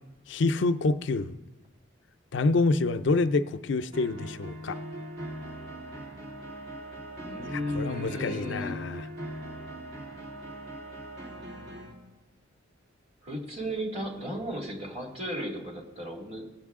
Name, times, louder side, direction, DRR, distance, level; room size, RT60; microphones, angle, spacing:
voice 1, 0.3-1.4 2.3-4.7 7.5-9.1, left 3 dB, 70° left, 12 dB, 0.5 m, -27 dB
sound 1, 3.9-11.9, right 1 dB, 60° right, 2.4 m, -41 dB
voice 2, 7.2-8.7 13.2-16.5, equal, 30° right, 0 dB, 2.2 m, -35 dB
18.5 x 7.8 x 3.6 m, 1.1 s
head